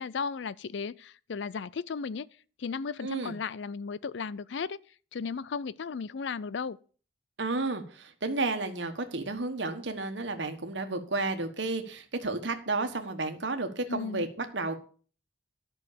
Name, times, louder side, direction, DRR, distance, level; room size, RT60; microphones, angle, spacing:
voice 1, 0.0-2.3 2.6-4.8 5.1-6.8 13.9-14.3, left 5 dB, 70° left, 0.4 m, -35 dB
voice 2, 3.0-3.3 7.4-14.7, right 3 dB, 70° right, 1.4 m, -32 dB
11.5 x 6.3 x 6.8 m
head